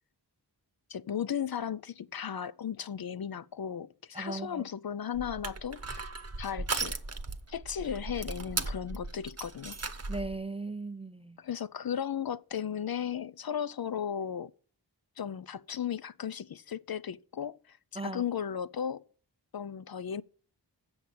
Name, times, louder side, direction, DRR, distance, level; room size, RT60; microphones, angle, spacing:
voice 1, 0.9-6.1 6.4-7.0 7.5-9.8 11.4-14.5 15.2-19.1 19.5-20.2, left 8 dB, 60° left, 0.5 m, -35 dB
voice 2, 4.1-4.6 10.1-11.4 18.0-18.2, right 3 dB, 15° right, 0.4 m, -37 dB
Crushing, 5.1-10.4, right 3 dB, 35° right, 0.9 m, -37 dB
7.9 x 7.1 x 7.3 m
wide cardioid pair, 50°, 43 cm